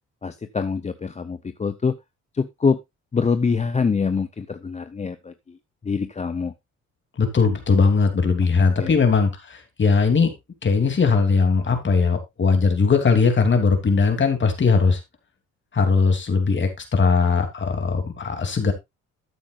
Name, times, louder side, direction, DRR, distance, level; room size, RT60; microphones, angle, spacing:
voice 1, 0.2-2.0 2.3-2.8 3.1-5.6 5.8-6.5 8.8-9.0, left 5 dB, 25° left, 0.7 m, -24 dB
voice 2, 7.2-10.3 10.6-15.0 15.7-18.7, left 4 dB, 40° left, 3.1 m, -19 dB
13.0 x 8.5 x 2.5 m
cardioid pair, 90°, 30 cm